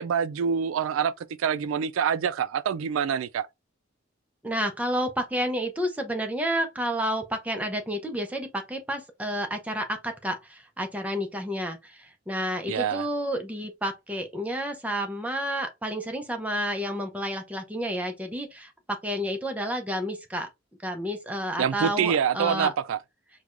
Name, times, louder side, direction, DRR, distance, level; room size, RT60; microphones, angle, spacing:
voice 1, 0.0-3.5 12.7-13.1 21.6-23.0, right 7 dB, 90° right, 0.3 m, -26 dB
voice 2, 4.4-20.5 20.8-22.7, equal, 10° right, 0.5 m, -30 dB
4.6 x 2.2 x 2.4 m
head